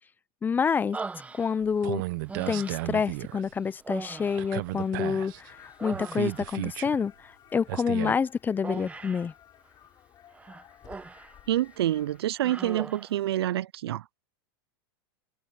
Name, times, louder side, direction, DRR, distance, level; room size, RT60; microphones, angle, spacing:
voice 1, 0.4-1.0 1.4-2.0 2.5-5.5 5.8-7.1 7.5-9.3, left 6 dB, 15° left, 0.5 m, -27 dB
Human voice, 0.9-1.8 2.3-3.0 3.8-5.3 5.6-6.6 8.6-9.3 10.3-11.4 11.7-11.9 12.4-13.2, right 4 dB, 10° right, 1.3 m, -40 dB
sound 1, 1.6-3.4 4.4-5.5 5.9-7.0 7.7-8.1, right 20 dB, 60° right, 1.1 m, -34 dB
sound 2, 5.0-12.2, left 11 dB, 30° left, 7.5 m, -55 dB
voice 2, 11.5-14.2, right 13 dB, 90° right, 0.4 m, -27 dB
supercardioid pair, 135°, 13 cm